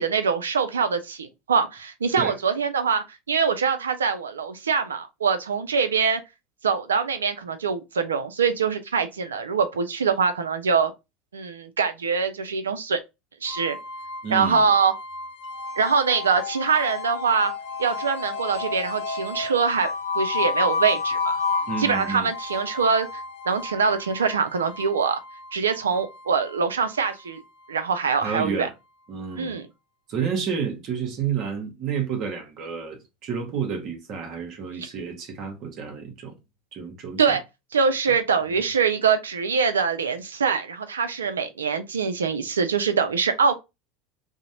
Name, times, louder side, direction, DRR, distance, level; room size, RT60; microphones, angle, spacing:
voice 1, 0.0-6.2 6.6-10.9 11.3-13.0 13.4-13.8 14.3-14.9 15.8-17.5 17.8-19.9 20.1-21.4 21.8-25.2 25.5-27.4 27.7-28.7 29.3-29.6 34.8-34.9 37.2-37.4 37.7-43.5, right 5 dB, 85° right, 0.3 m, -24 dB
sound 1, 13.5-28.4, left 4 dB, 65° left, 0.6 m, -32 dB
voice 2, 14.2-14.7 21.7-22.3 28.2-28.7 29.1-29.6 30.1-36.3 36.7-37.4 38.1-38.2 38.5-38.6, right 6 dB, 50° right, 0.8 m, -30 dB
2.4 x 2.0 x 2.8 m
hypercardioid pair, 80°, 0 cm